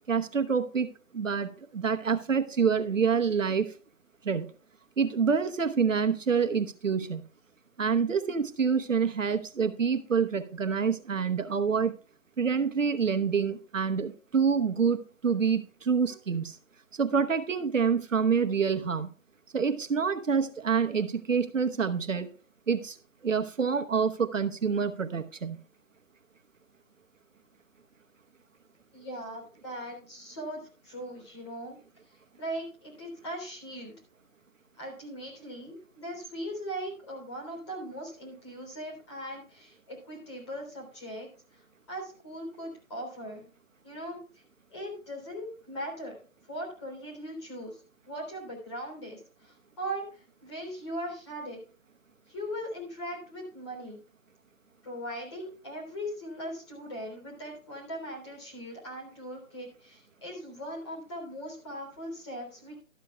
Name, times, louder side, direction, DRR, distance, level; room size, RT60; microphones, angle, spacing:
voice 1, 0.1-0.9 1.1-3.7 4.2-4.5 5.0-7.2 7.8-11.9 12.4-16.6 16.9-19.1 19.5-22.3 22.7-23.0 23.2-25.6, right 6 dB, 70° right, 8 dB, 1.1 m, -27 dB
voice 2, 28.9-31.8 32.4-33.9 34.8-41.3 41.5-41.6 41.9-43.5 43.8-44.4 44.7-46.1 46.5-47.8 48.1-51.6 52.3-54.0 54.8-62.8, equal, 20° left, -2 dB, 3.4 m, -39 dB
13.0 x 12.5 x 2.3 m, 0.39 s
hypercardioid pair, 175°, 40 cm